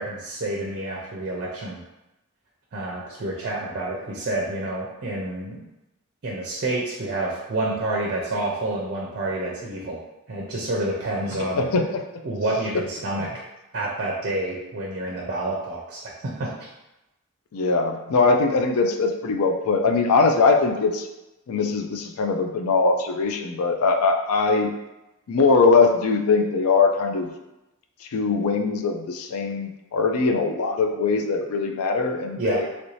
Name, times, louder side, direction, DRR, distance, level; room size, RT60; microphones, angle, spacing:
voice 1, 0.0-1.8 2.7-5.7 6.2-10.0 10.3-11.6 12.2-13.4 13.7-16.5 32.4-32.6, right 2 dB, 50° right, -2 dB, 0.5 m, -28 dB
voice 2, 11.5-12.0 17.5-21.1 21.5-24.7 25.3-27.3 28.1-32.6, left 4 dB, 75° left, 4 dB, 0.4 m, -21 dB
3.1 x 2.6 x 3.1 m, 0.97 s
head